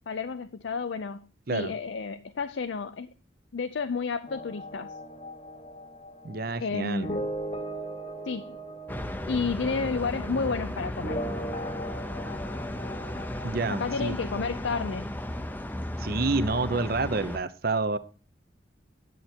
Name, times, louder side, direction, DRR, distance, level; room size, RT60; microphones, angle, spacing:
voice 1, 0.1-3.1 3.5-5.0 6.6-7.3 8.2-8.6 9.3-11.2 13.7-15.1, left 4 dB, 70° left, 0.5 m, -31 dB
sound 1, 4.3-14.4, right 1 dB, 30° left, 1.0 m, -39 dB
voice 2, 6.2-7.1 13.4-14.1 16.0-18.0, right 3 dB, 50° right, 0.8 m, -28 dB
sound 2, 8.9-17.4, left 1 dB, 10° left, 0.5 m, -35 dB
11.0 x 8.1 x 4.4 m
head